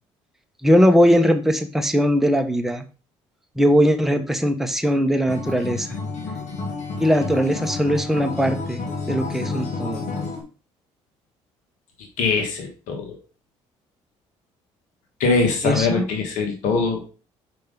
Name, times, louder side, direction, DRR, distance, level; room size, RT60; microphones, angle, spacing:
voice 1, 0.6-2.8 3.6-5.9 7.0-10.0 15.6-16.1, equal, ahead, 5 dB, 1.1 m, -20 dB
Acoustic guitar, 5.3-10.4, left 4 dB, 60° left, 2.1 m, -30 dB
voice 2, 12.2-13.1 15.2-17.0, left 4 dB, 80° left, 3 dB, 1.6 m, -22 dB
5.8 x 5.2 x 3.9 m, 0.36 s
supercardioid pair, 80°, 13 cm